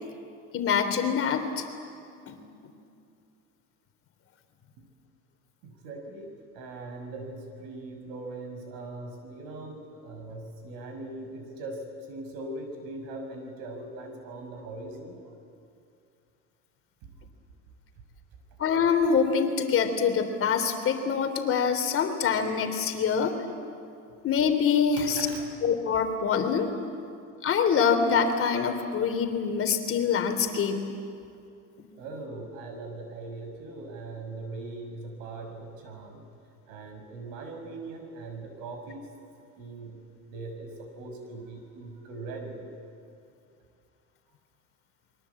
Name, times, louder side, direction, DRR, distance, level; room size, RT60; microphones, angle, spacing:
voice 1, 0.5-1.6 2.3-2.4 18.6-23.4 24.2-25.3 25.6-26.7 27.4-30.9, left 6 dB, 40° left, 6 dB, 3.3 m, -25 dB
voice 2, 5.6-15.4 17.0-17.1 25.0-25.5 32.0-36.3 36.7-39.1 39.6-42.7, right 2 dB, 65° right, 4 dB, 6.5 m, -40 dB
28.0 x 22.5 x 8.5 m, 2.5 s
supercardioid pair, 110°, 35 cm